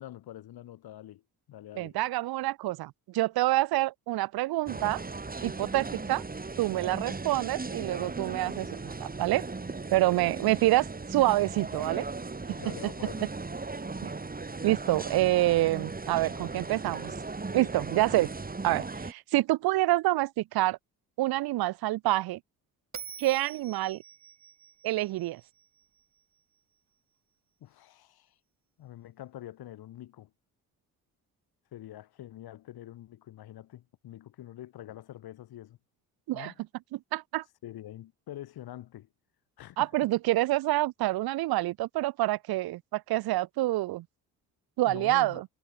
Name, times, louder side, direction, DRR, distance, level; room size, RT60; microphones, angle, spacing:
voice 1, 0.0-2.0 12.6-13.3 27.6-28.4 28.8-30.3 31.7-35.8 36.3-36.6 37.6-39.1 39.6-40.1 44.8-45.4, left 13 dB, 80° left, 6.2 m, -45 dB
voice 2, 1.8-5.0 5.4-6.2 6.6-9.4 9.9-12.0 12.5-12.6 14.0-14.1 14.6-17.1 17.5-18.3 18.6-20.8 21.2-22.4 23.2-24.0 24.8-25.4 36.3-36.5 36.9-37.4 39.8-44.1 44.8-45.4, right 17 dB, 75° right, 0.8 m, -27 dB
sound 1, 4.7-19.1, right 3 dB, 25° right, 5.9 m, -37 dB
Bell, 22.9-26.2, right 7 dB, 45° right, 5.8 m, -47 dB
cardioid pair, 80°, 37 cm